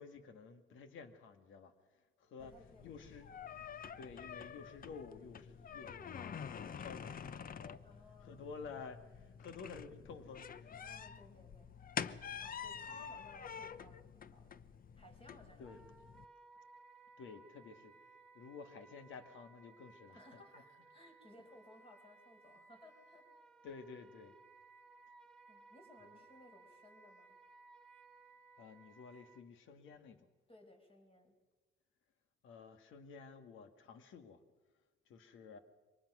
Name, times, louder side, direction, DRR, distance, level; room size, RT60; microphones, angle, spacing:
voice 1, 0.0-2.5 2.8-3.5 4.0-7.8 8.2-10.8 12.9-13.0 15.6-15.8 17.2-17.9 18.3-20.2 23.6-24.4 28.6-30.2 32.4-34.4 35.1-35.6, left 5 dB, 80° left, 9 dB, 1.9 m, -52 dB
sound 1, 2.4-16.2, left 7 dB, 45° left, 0.9 m, -48 dB
voice 2, 2.4-3.1 7.8-8.5 10.7-11.7 12.4-14.6 15.0-15.7 20.1-23.3 25.5-27.4 30.5-31.3, left 1 dB, 25° left, 3 dB, 5.3 m, -61 dB
Wind instrument woodwind instrument, 15.6-29.4, right 3 dB, ahead, 3.9 m, -62 dB
24.0 x 19.5 x 6.2 m, 1.3 s
cardioid pair, 90°, 20 cm